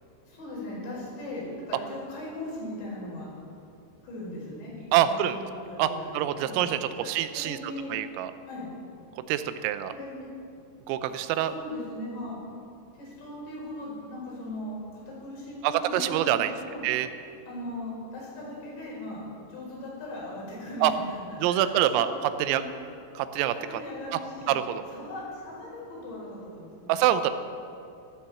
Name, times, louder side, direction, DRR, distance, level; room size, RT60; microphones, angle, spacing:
voice 1, 0.3-3.3 4.0-6.1 6.4-6.6 7.0-8.0 8.5-8.7 9.9-10.3 11.4-12.4 12.9-16.8 17.5-19.2 19.5-22.7 23.5-24.6 24.9-27.1, left 1 dB, 60° left, -6 dB, 7.2 m, -39 dB
voice 2, 4.9-5.4 5.8-6.8 7.1-7.6 7.9-8.3 9.3-9.9 10.9-11.5 15.6-16.5 16.8-17.1 20.8-20.9 21.4-22.1 22.4-22.6 23.2-23.6 24.1-24.2 24.5-24.8 26.9-27.3, right 12 dB, 90° right, 11 dB, 3.4 m, -25 dB
14.0 x 12.5 x 7.0 m, 2.6 s
omnidirectional pair, 5.8 m